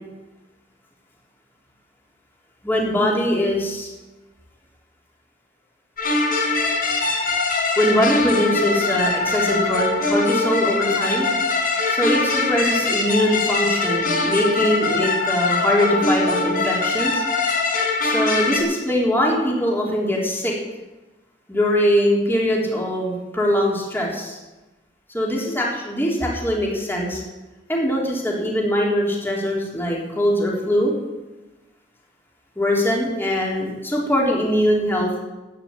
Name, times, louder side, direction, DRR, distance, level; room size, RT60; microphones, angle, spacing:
voice 1, 2.6-3.9 7.8-11.3 11.9-17.2 18.0-20.5 21.5-24.4 25.1-27.2 27.7-30.9 32.6-35.1, equal, 10° left, -3 dB, 3.8 m, -22 dB
sound 1, 6.0-18.6, left 3 dB, 50° left, 4.1 m, -22 dB
13.0 x 9.5 x 9.2 m, 1.1 s
head